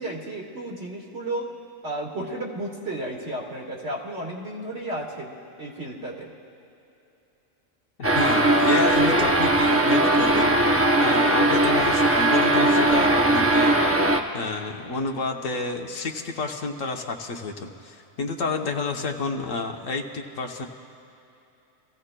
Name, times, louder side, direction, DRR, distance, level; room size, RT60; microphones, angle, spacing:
voice 1, 0.0-1.5 1.8-6.3 18.6-18.7, right 1 dB, 55° right, -2 dB, 2.1 m, -33 dB
voice 2, 8.0-10.5 10.8-13.8 14.3-20.7, left 4 dB, 70° left, 3 dB, 1.3 m, -29 dB
sound 1, 8.0-14.2, right 1 dB, 20° right, 0.4 m, -19 dB
25.0 x 16.0 x 2.2 m, 2.9 s
omnidirectional pair, 1.4 m